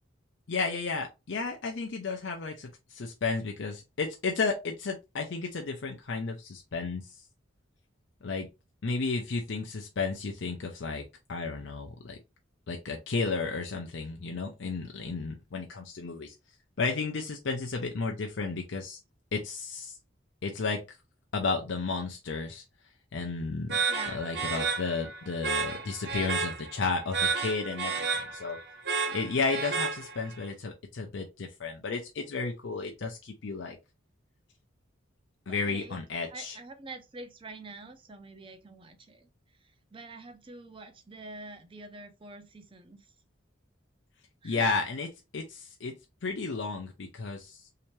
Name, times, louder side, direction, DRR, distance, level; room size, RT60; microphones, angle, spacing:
voice 1, 0.5-7.2 8.2-8.5 8.8-12.2 12.7-16.3 16.8-19.0 19.3-19.9 20.4-20.8 21.3-22.6 23.1-28.6 29.1-33.8 35.5-36.6 44.4-45.9 46.2-47.7, left 4 dB, 65° left, 0.5 m, -33 dB
sound 1, 23.7-30.4, right 5 dB, 60° right, 1.2 m, -32 dB
voice 2, 23.9-24.3 35.5-36.0 36.3-39.3 39.9-43.1 44.4-44.6, right 3 dB, 25° right, 0.6 m, -45 dB
3.4 x 2.8 x 3.1 m
head